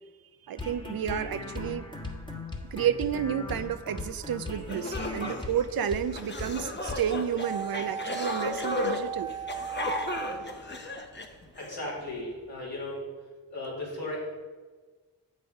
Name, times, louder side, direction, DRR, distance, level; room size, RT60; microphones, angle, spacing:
voice 1, 0.5-1.9 2.7-9.3, right 9 dB, 65° right, 13 dB, 0.5 m, -31 dB
sound 1, 0.6-6.1 6.4-6.5 6.9-7.0, left 2 dB, 10° left, 1.4 m, -38 dB
sound 2, 4.3-4.4 4.7-11.8, left 2 dB, 30° left, 1.0 m, -35 dB
sound 3, 7.4-11.5 11.8-11.9, right 7 dB, 10° right, 0.4 m, -37 dB
voice 2, 11.6-13.0 13.5-14.4, left 1 dB, 70° left, -5 dB, 2.8 m, -36 dB
7.6 x 5.6 x 4.9 m, 1.4 s
cardioid pair, 45°, 39 cm